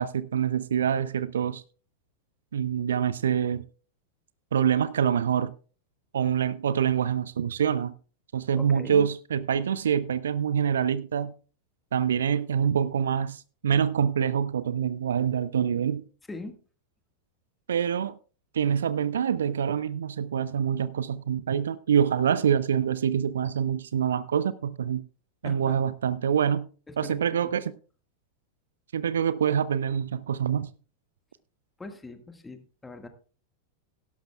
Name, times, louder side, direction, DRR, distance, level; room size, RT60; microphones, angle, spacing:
voice 1, 0.0-1.6 2.5-3.6 4.5-5.5 6.1-7.9 8.3-11.3 11.9-16.0 17.7-18.2 18.5-25.0 25.4-26.7 27.0-27.7 28.9-30.7, right 8 dB, 65° right, 0.5 m, -25 dB
voice 2, 8.6-9.1 16.3-16.5 25.4-25.8 26.9-27.5 31.8-33.1, left 2 dB, 10° left, 1.7 m, -42 dB
17.0 x 12.0 x 2.3 m
figure-of-eight pair, 90°, 0 cm